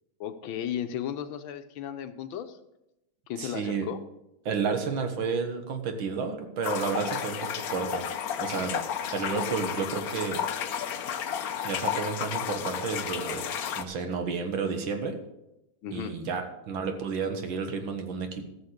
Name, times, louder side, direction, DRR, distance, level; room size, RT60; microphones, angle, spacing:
voice 1, 0.2-2.6 3.3-4.0 15.8-16.1, left 9 dB, 80° left, 9 dB, 1.6 m, -35 dB
voice 2, 3.4-3.9 4.5-8.1 8.4-8.8 9.1-10.4 11.6-15.2 15.9-18.5, right 5 dB, 75° right, 6 dB, 2.1 m, -31 dB
sound 1, 6.6-13.8, left 8 dB, 60° left, 1.0 m, -32 dB
14.0 x 6.8 x 6.6 m, 0.91 s
omnidirectional pair, 2.2 m